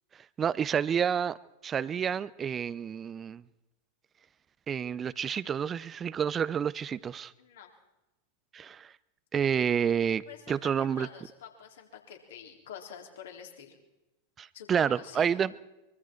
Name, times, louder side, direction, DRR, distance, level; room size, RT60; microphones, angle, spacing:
voice 1, 0.4-1.4 1.6-3.4 4.7-7.3 8.5-8.9 9.3-11.1 14.4-15.5, right 8 dB, 25° right, 0.7 m, -29 dB
voice 2, 7.4-7.7 10.3-10.6 11.0-13.8 14.5-15.5, left 8 dB, 60° left, 3.8 m, -47 dB
24.5 x 24.0 x 4.6 m
figure-of-eight pair, 90°, 0 cm